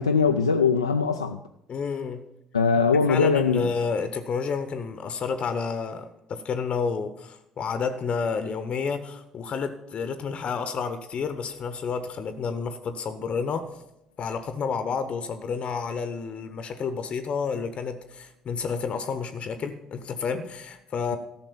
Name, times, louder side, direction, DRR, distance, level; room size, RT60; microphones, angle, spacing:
voice 1, 0.0-1.4 2.5-3.7, left 5 dB, 90° left, 4 dB, 0.4 m, -21 dB
voice 2, 1.7-2.2 3.1-13.7 14.2-21.2, left 5 dB, 45° left, 10 dB, 0.8 m, -30 dB
13.5 x 6.0 x 7.0 m, 0.83 s
figure-of-eight pair, 50°, 3 cm